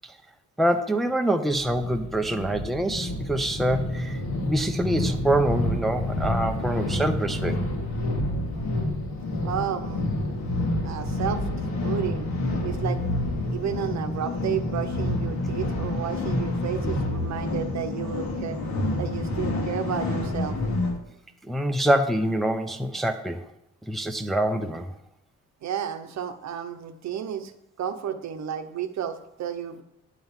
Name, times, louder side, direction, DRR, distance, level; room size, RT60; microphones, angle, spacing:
voice 1, 0.6-7.6 21.5-23.4 23.9-24.9, right 1 dB, ahead, 5 dB, 0.6 m, -25 dB
sound 1, 1.5-21.0, left 1 dB, 65° left, 1.8 m, -28 dB
voice 2, 9.4-10.1 10.8-12.3 12.6-13.0 13.5-18.6 19.0-20.6 25.6-27.5 27.8-29.8, right 9 dB, 65° right, 8 dB, 0.9 m, -32 dB
9.3 x 3.9 x 7.1 m, 0.82 s
cardioid pair, 90°, 30 cm